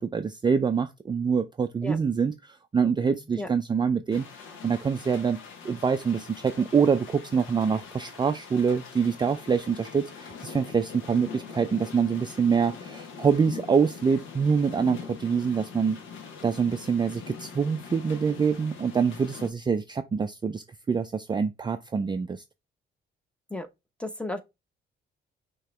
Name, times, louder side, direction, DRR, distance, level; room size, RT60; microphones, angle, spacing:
voice 1, 0.0-16.0 16.4-22.4, right 6 dB, 20° right, 0.4 m, -25 dB
sound 1, 4.1-19.5, left 6 dB, 90° left, 1.0 m, -43 dB
voice 2, 24.0-24.4, left 1 dB, 5° left, 0.8 m, -33 dB
5.6 x 2.9 x 3.2 m
cardioid pair, 90°, 20 cm